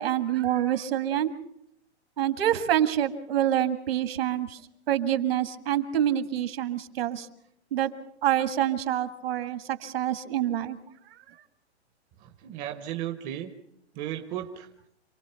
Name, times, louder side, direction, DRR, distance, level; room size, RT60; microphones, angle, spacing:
voice 1, 0.0-1.3 2.2-4.6 4.9-7.3 7.7-7.9 8.2-10.8, right 11 dB, 60° right, 11 dB, 1.6 m, -26 dB
voice 2, 12.2-13.5 13.9-14.7, right 12 dB, 20° right, 7 dB, 0.9 m, -35 dB
27.0 x 18.5 x 5.6 m, 0.74 s
hypercardioid pair, 155°, 33 cm